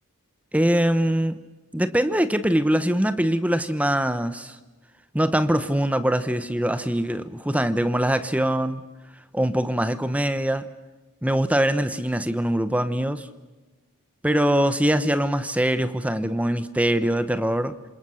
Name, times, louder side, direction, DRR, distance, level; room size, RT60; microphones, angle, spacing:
voice 1, 0.5-1.4 1.7-4.6 5.1-8.8 9.3-10.7 11.2-13.3 14.2-17.8, right 1 dB, 5° right, 11 dB, 1.1 m, -23 dB
27.5 x 27.0 x 6.5 m, 1.2 s
head